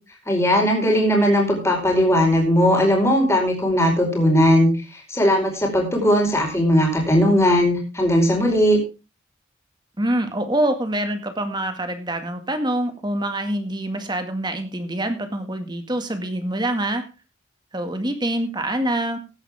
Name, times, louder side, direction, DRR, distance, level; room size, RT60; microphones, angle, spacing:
voice 1, 0.3-8.8, equal, 15° left, 0 dB, 4.8 m, -18 dB
voice 2, 10.0-17.0 17.7-19.2, right 1 dB, 20° right, 7 dB, 2.1 m, -25 dB
16.0 x 11.0 x 3.6 m, 0.31 s
head